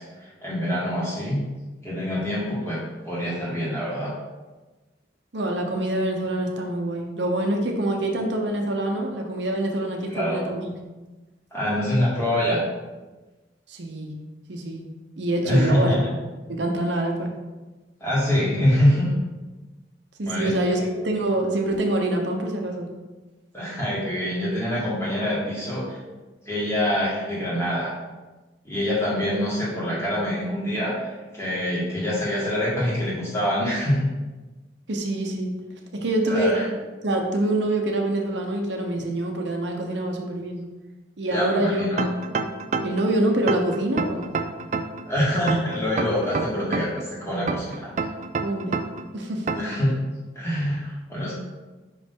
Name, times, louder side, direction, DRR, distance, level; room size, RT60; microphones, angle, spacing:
voice 1, 0.0-1.4 1.8-4.1 10.1-10.4 11.5-12.6 15.4-16.0 18.0-19.1 20.2-20.9 23.5-26.0 26.5-27.9 28.6-34.1 36.3-36.7 41.3-42.1 45.1-47.9 49.6-50.0 50.3-51.3, equal, 15° left, -7 dB, 1.8 m, -25 dB
voice 2, 5.3-10.7 13.7-14.1 14.5-14.9 15.2-16.0 16.5-17.3 20.2-22.9 34.9-35.6 35.9-36.5 37.0-40.7 41.2-41.9 42.8-44.3 48.4-48.8 49.1-49.5, right 1 dB, 75° right, 2 dB, 0.9 m, -25 dB
sound 1, 42.0-43.1 43.5-45.0 45.5-47.0 47.5-49.0 49.5-49.8, right 4 dB, 40° right, 0.3 m, -27 dB
5.7 x 5.2 x 3.7 m, 1.2 s
head